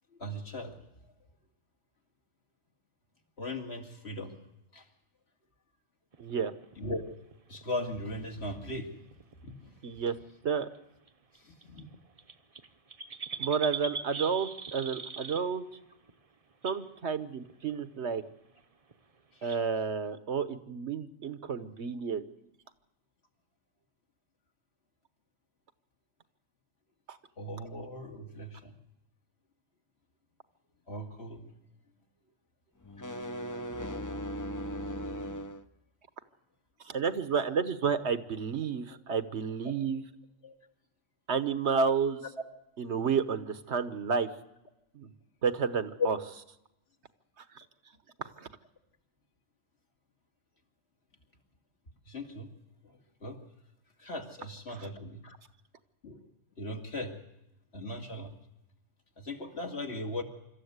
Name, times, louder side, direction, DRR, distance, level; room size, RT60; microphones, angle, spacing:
voice 1, 0.2-0.8 3.4-4.3 4.7-4.8 6.8-7.0 7.5-9.0 9.4-9.8 11.4-11.9 19.3-19.6 27.4-28.7 30.9-31.5 40.4-40.6 52.1-52.5 52.8-53.4 54.0-55.3 56.0-56.3 56.6-57.1 57.7-58.3 59.2-60.2, left 1 dB, 65° left, 2 dB, 2.4 m, -39 dB
sound 1, 6.1-7.8 8.7-8.8 9.1-9.3 10.4-10.8 11.1-11.2 11.4-11.5 11.6-15.8 16.1-16.2 16.5-16.9 17.5-17.8 18.2-18.3 18.6-18.7 18.9-19.0 19.5-19.6, right 5 dB, 35° right, 0.8 m, -41 dB
voice 2, 6.2-6.5 9.8-10.2 10.4-10.7 13.4-15.6 16.6-18.2 19.4-22.3 27.1-27.2 36.8-40.0 41.3-42.2 42.8-44.3 44.9-45.1 45.4-46.2 47.4-47.6 48.2-48.5 54.7-54.9, right 6 dB, 70° right, 11 dB, 1.3 m, -31 dB
sound 2, 32.8-35.6, equal, 20° left, 0.7 m, -37 dB
26.0 x 13.5 x 8.1 m, 0.87 s
omnidirectional pair, 1.2 m